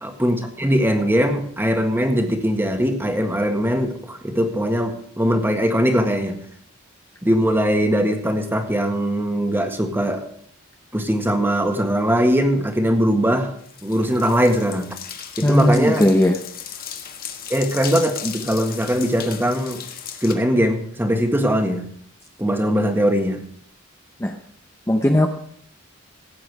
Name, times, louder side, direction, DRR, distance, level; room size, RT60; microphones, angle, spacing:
voice 1, 0.0-6.4 7.2-10.2 10.9-13.6 13.8-14.9 15.4-16.0 17.5-19.8 20.2-21.9 22.4-23.4, equal, 10° right, 5 dB, 1.6 m, -20 dB
sound 1, 13.6-20.3, left 8 dB, 45° left, 1.4 m, -36 dB
voice 2, 15.4-16.4 24.2-24.3 24.9-25.3, left 1 dB, 15° left, 3 dB, 0.8 m, -17 dB
16.0 x 8.7 x 4.8 m, 0.64 s
head